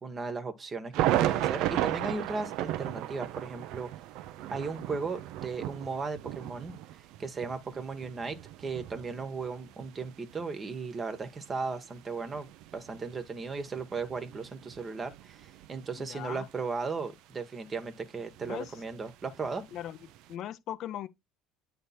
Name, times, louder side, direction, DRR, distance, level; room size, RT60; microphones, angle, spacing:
voice 1, 0.0-3.9 4.5-6.7 7.2-19.6, right 4 dB, 30° right, 1.2 m, -36 dB
sound 1, 0.9-16.0 16.5-16.6 17.9-20.3, right 13 dB, 60° right, 0.5 m, -35 dB
voice 2, 16.0-16.5 18.4-18.7 19.7-20.0 20.3-21.1, left 11 dB, 55° left, 0.6 m, -39 dB
9.1 x 3.2 x 4.2 m
hypercardioid pair, 65°, 0 cm